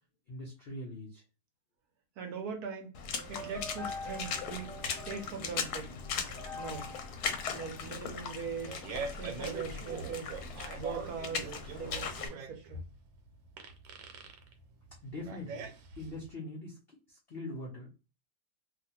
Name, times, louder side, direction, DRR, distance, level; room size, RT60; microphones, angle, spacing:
voice 1, 0.3-1.2 15.0-17.9, left 1 dB, 85° left, 0.5 m, -43 dB
voice 2, 2.2-2.9 3.3-4.7 5.0-6.0 6.5-6.9 7.5-10.3 10.7-12.9, right 5 dB, 70° right, 1.0 m, -41 dB
Water / Splash splatter, 2.9-12.3, left 6 dB, 70° left, 1.0 m, -39 dB
sound 1, 3.1-8.5, left 2 dB, 40° left, 0.7 m, -46 dB
Fart, 8.4-16.3, right 5 dB, 85° right, 1.4 m, -43 dB
2.8 x 2.4 x 2.7 m
omnidirectional pair, 2.0 m